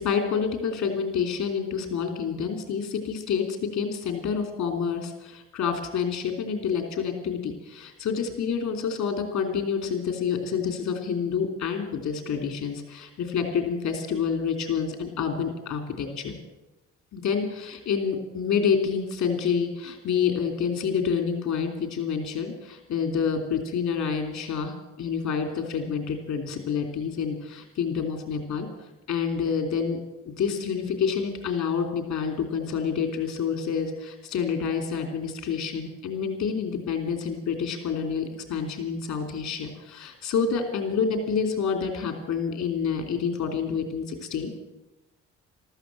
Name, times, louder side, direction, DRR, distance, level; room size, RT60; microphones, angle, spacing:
voice 1, 0.0-3.4 3.7-16.3 17.1-28.7 29.1-30.0 30.2-44.6, left 6 dB, 65° left, 5 dB, 3.1 m, -28 dB
14.0 x 13.5 x 7.6 m, 0.97 s
cardioid pair, 90°, 30 cm